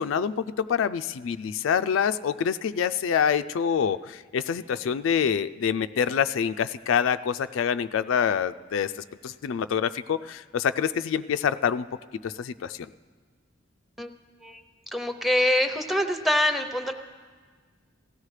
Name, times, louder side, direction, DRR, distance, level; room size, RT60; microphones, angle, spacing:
voice 1, 0.0-8.9 9.2-11.9 12.2-12.9, left 7 dB, 85° left, 12 dB, 0.3 m, -26 dB
voice 2, 14.9-16.9, left 1 dB, ahead, 8 dB, 0.7 m, -24 dB
17.5 x 15.0 x 3.3 m, 1.6 s
head